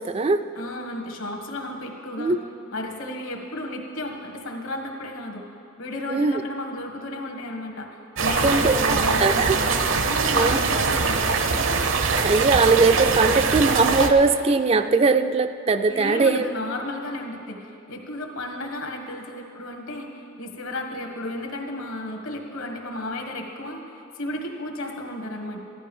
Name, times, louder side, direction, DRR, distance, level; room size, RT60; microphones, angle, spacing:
voice 1, 0.0-0.4 2.2-2.4 6.1-6.3 8.4-9.6 10.3-10.6 12.2-16.5, right 4 dB, 30° right, 9 dB, 0.3 m, -20 dB
voice 2, 0.6-2.4 2.7-5.4 5.8-11.2 15.9-25.6, left 1 dB, 75° left, 2 dB, 1.6 m, -33 dB
sound 1, 8.2-14.1, right 4 dB, 70° right, 0.7 m, -22 dB
14.5 x 11.5 x 5.4 m, 2.7 s
head